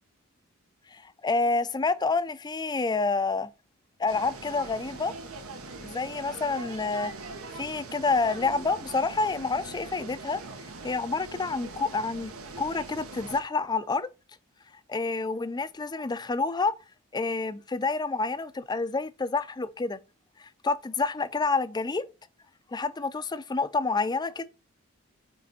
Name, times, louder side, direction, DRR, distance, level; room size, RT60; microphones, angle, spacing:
voice 1, 0.9-3.5 4.0-5.1 5.8-7.1 7.6-10.4 10.8-12.3 12.6-14.1 14.9-16.7 17.1-20.0 20.4-22.0 22.7-24.5, left 3 dB, 20° left, 0.4 m, -28 dB
sound 1, 4.1-13.4, right 3 dB, 85° right, 1.2 m, -42 dB
8.5 x 3.3 x 4.1 m
head